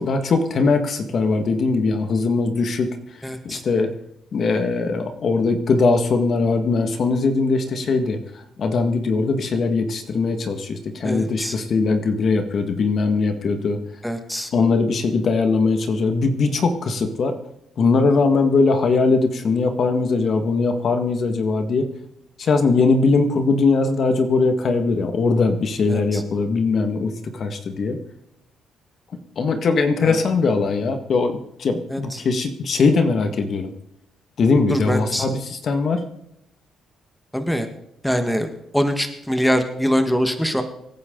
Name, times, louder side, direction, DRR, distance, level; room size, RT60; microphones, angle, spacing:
voice 1, 0.0-3.0 3.4-3.9 4.3-13.8 14.5-17.4 17.8-21.9 22.4-28.0 29.4-33.7 34.4-36.0, left 4 dB, 55° left, 6 dB, 1.9 m, -20 dB
voice 2, 3.2-3.6 11.0-11.6 14.0-14.5 25.9-26.2 30.0-30.2 31.9-32.2 34.7-35.3 37.3-37.7 38.0-40.6, equal, 5° left, 7 dB, 1.7 m, -23 dB
25.0 x 10.0 x 4.0 m, 0.77 s
cardioid pair, 90°, 0 cm